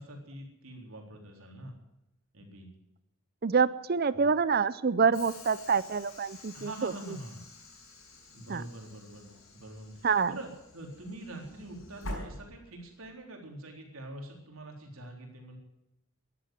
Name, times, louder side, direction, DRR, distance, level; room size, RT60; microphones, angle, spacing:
voice 1, 0.0-1.7 2.3-2.7 4.1-4.2 6.5-7.4 8.3-15.6, right 1 dB, 80° right, 2 dB, 3.9 m, -45 dB
voice 2, 3.4-6.9 8.5-8.6 10.0-10.3, right 5 dB, 45° right, 16 dB, 0.5 m, -26 dB
Train / Sliding door, 5.1-13.1, left 1 dB, 75° left, 5.9 m, -47 dB
14.0 x 11.0 x 9.2 m, 0.87 s
head